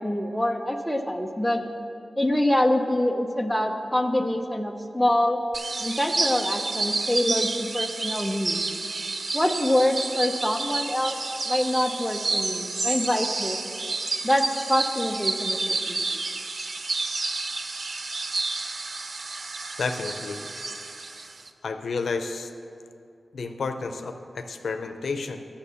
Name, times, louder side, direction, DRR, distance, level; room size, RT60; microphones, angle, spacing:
voice 1, 0.0-1.6 2.2-5.4 5.8-8.6 9.3-11.2 11.5-13.6 14.2-16.0, left 1 dB, 5° left, 4 dB, 0.6 m, -25 dB
sound 1, 5.5-21.5, right 3 dB, 50° right, 0.5 m, -30 dB
voice 2, 19.8-20.4 21.6-22.5 23.3-25.5, left 4 dB, 80° left, 7 dB, 0.6 m, -31 dB
9.6 x 7.1 x 6.9 m, 2.5 s
wide cardioid pair, 115°, 0 cm